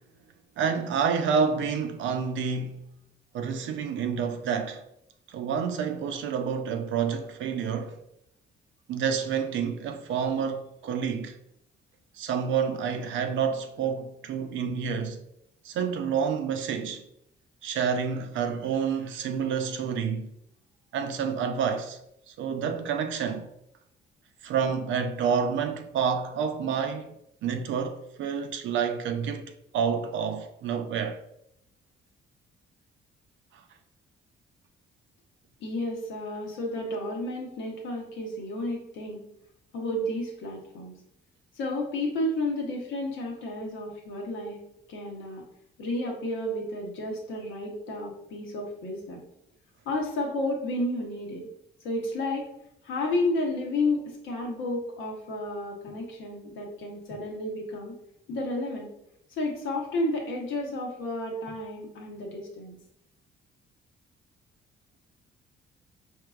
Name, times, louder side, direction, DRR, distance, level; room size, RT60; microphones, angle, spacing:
voice 1, 0.6-2.8 3.3-4.8 5.3-8.0 8.9-11.4 12.2-15.2 15.6-17.0 17.6-20.3 20.9-22.0 22.3-23.5 24.4-27.1 27.4-31.2, right 6 dB, 75° right, 0.5 m, -28 dB
voice 2, 35.6-39.2 39.7-40.9 41.5-44.6 44.9-45.4 45.8-49.2 49.8-51.5 51.8-52.5 52.8-57.9 58.3-58.9 59.3-62.8, left 1 dB, 80° left, 1.0 m, -31 dB
4.5 x 2.7 x 2.4 m
cardioid pair, 90°, 20 cm